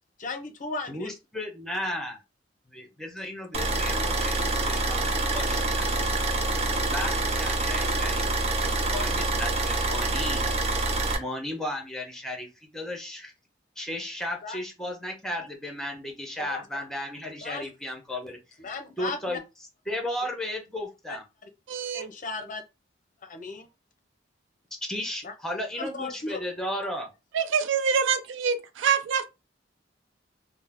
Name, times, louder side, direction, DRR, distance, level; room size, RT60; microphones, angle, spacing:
voice 1, 0.2-1.1 14.4-14.6 16.4-16.8 17.4-17.7 18.6-19.4 21.1-21.2 21.9-22.6 23.2-23.7 25.2-25.3 25.8-26.4, left 3 dB, 45° left, 0.5 m, -36 dB
voice 2, 0.9-2.2 2.7-5.9 6.9-8.2 8.6-10.5 11.2-13.3 13.8-18.4 19.0-19.4 19.9-21.2 24.9-27.1, left 1 dB, 5° left, 0.8 m, -35 dB
sound 1, 3.5-11.2, right 2 dB, 35° right, 0.5 m, -26 dB
voice 3, 21.7-22.1 27.3-29.3, right 6 dB, 90° right, 0.4 m, -25 dB
2.7 x 2.0 x 3.4 m
head